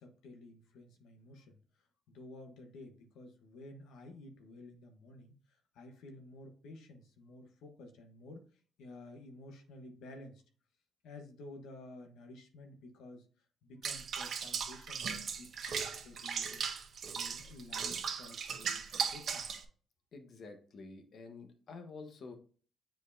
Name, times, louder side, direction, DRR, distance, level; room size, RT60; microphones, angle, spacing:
voice 1, 0.0-1.6 2.1-8.5 8.8-10.4 11.0-16.7 17.1-19.5, left 2 dB, 85° left, 5 dB, 1.1 m, -52 dB
Water / Bathtub (filling or washing), 13.8-19.6, right 6 dB, 60° right, 1.1 m, -37 dB
voice 2, 20.1-22.4, left 4 dB, 60° left, 6 dB, 1.3 m, -49 dB
7.7 x 4.5 x 2.7 m, 0.41 s
cardioid pair, 90°, 0 cm